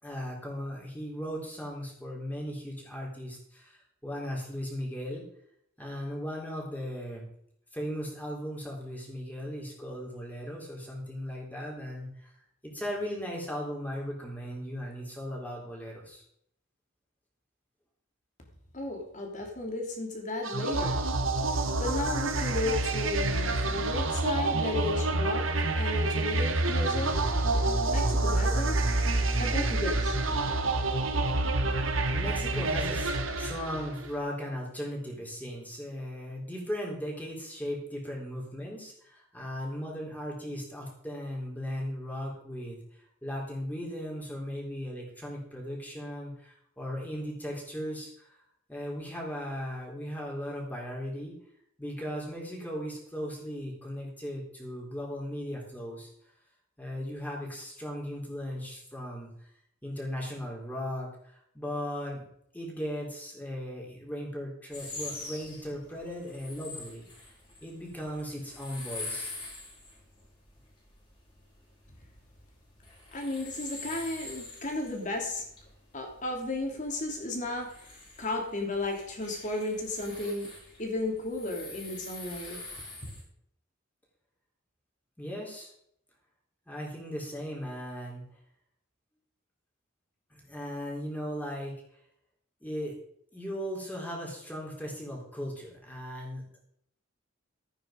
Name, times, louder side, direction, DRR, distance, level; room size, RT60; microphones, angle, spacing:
voice 1, 0.0-5.2 5.8-7.2 7.7-12.3 12.6-16.2 32.1-33.1 33.4-48.4 48.7-51.3 51.8-56.1 56.8-59.5 59.8-62.3 62.5-67.0 67.6-69.3 85.2-85.7 86.7-88.2 90.3-91.7 92.6-93.0 93.3-96.6, equal, 10° left, -2 dB, 4.0 m, -37 dB
voice 2, 18.7-21.0 21.8-27.1 27.9-28.7 29.4-30.2 73.1-75.4 75.9-80.5 80.8-82.6 83.0-83.1, left 2 dB, 40° left, 1 dB, 3.2 m, -34 dB
sound 1, 20.4-34.1, right 2 dB, 80° right, 1.6 m, -28 dB
sound 2, 64.7-83.2, left 2 dB, 25° left, 4.2 m, -45 dB
14.5 x 9.3 x 5.2 m, 0.71 s
head